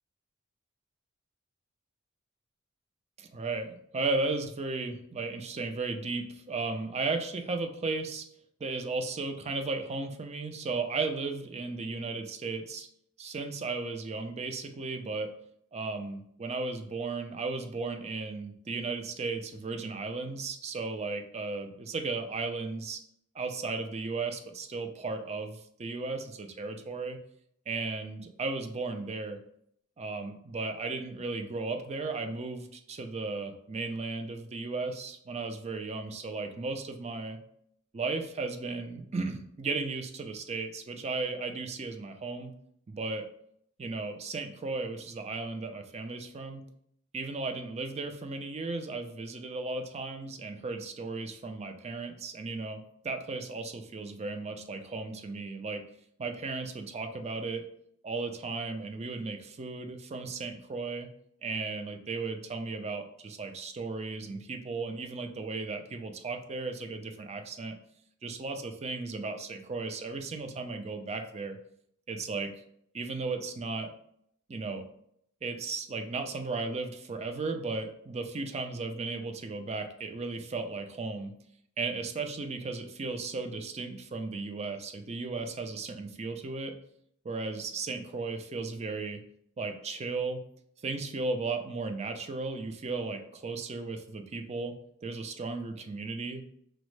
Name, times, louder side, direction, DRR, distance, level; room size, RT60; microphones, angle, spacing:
voice 1, 3.2-8.2 8.6-12.9 13.2-15.3 15.7-23.0 23.3-27.2 27.7-29.4 30.0-37.4 37.9-42.5 42.9-43.3 43.8-46.6 47.1-52.8 53.0-55.8 56.2-57.7 58.0-61.1 61.4-67.7 68.2-71.6 72.1-72.5 72.9-73.9 74.5-74.9 75.4-81.3 81.8-86.7 87.2-89.2 89.6-90.4 90.8-94.7 95.0-96.4, right 3 dB, 30° right, 6 dB, 0.4 m, -35 dB
6.0 x 2.1 x 3.1 m, 0.70 s
head